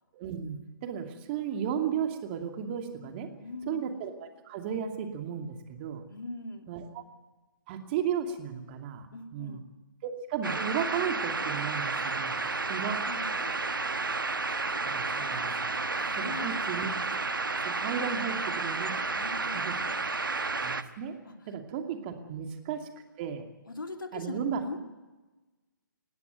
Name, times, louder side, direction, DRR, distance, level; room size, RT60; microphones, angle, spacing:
voice 1, 0.1-3.3 3.7-4.1 4.5-6.0 6.7-7.0 7.7-9.1 9.3-9.6 10.0-13.0 14.0-14.1 14.8-15.8 16.2-16.9 17.6-18.9 19.5-19.8 20.6-21.1 21.5-22.9 23.2-23.4 24.1-24.6, right 8 dB, 30° right, 5 dB, 2.6 m, -34 dB
voice 2, 3.4-3.8 6.1-6.7 9.1-9.6 12.8-13.6 15.9-16.6 19.1-19.6 21.2-21.5 23.7-24.8, left 3 dB, 75° left, 6 dB, 2.4 m, -41 dB
sound 1, 10.4-20.8, right 3 dB, 80° right, 1.3 m, -31 dB
19.5 x 16.0 x 9.4 m, 1.1 s
figure-of-eight pair, 140°, 11 cm